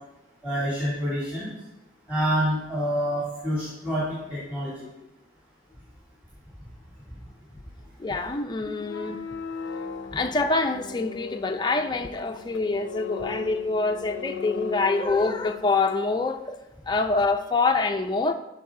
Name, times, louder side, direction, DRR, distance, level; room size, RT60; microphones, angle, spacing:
voice 1, 0.4-1.5 2.1-4.9 10.1-10.2, equal, 10° right, 2.4 m, -27 dB
voice 2, 8.0-9.2 10.1-16.6 16.9-18.3, left 3 dB, 20° left, 0.4 m, -25 dB
sound 1, 8.8-15.7, left 5 dB, 85° left, 0.5 m, -38 dB
13.0 x 4.6 x 3.7 m
head